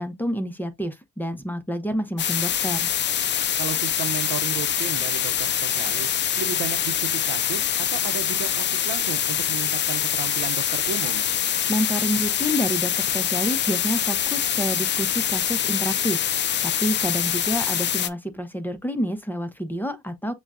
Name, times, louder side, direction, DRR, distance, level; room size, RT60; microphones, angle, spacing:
voice 1, 0.0-2.9 11.7-16.3 16.6-20.3, equal, 5° left, 0.8 m, -28 dB
sound 1, 2.2-18.1, left 9 dB, 40° left, 0.4 m, -24 dB
voice 2, 3.6-6.1 6.4-11.3, right 9 dB, 90° right, 0.8 m, -34 dB
6.9 x 2.3 x 2.5 m
cardioid pair, 90°, 30 cm